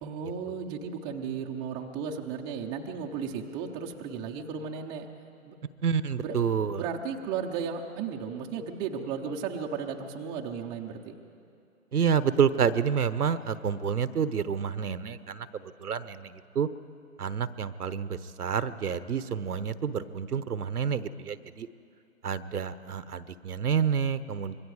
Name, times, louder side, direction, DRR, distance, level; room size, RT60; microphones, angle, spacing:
voice 1, 0.0-5.1 5.5-5.6 6.2-6.3 6.8-11.1, right 6 dB, 10° right, 1 dB, 0.6 m, -35 dB
voice 2, 5.8-6.9 11.9-16.7 17.2-21.7 22.2-24.6, right 7 dB, 80° right, 14 dB, 1.0 m, -29 dB
25.5 x 22.5 x 4.8 m, 2.5 s
hypercardioid pair, 135°, 44 cm